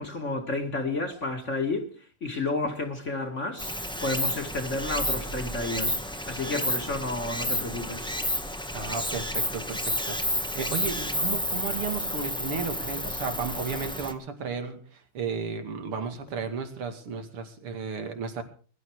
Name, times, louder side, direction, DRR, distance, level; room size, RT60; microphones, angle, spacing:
voice 1, 0.0-1.9 2.2-3.7 4.0-8.1, left 2 dB, 35° left, 2.3 m, -31 dB
Stream, 3.6-14.1, equal, 5° left, 1.0 m, -31 dB
voice 2, 8.7-14.8 15.1-18.4, right 5 dB, 90° right, 3.2 m, -34 dB
21.5 x 12.0 x 4.8 m
omnidirectional pair, 2.4 m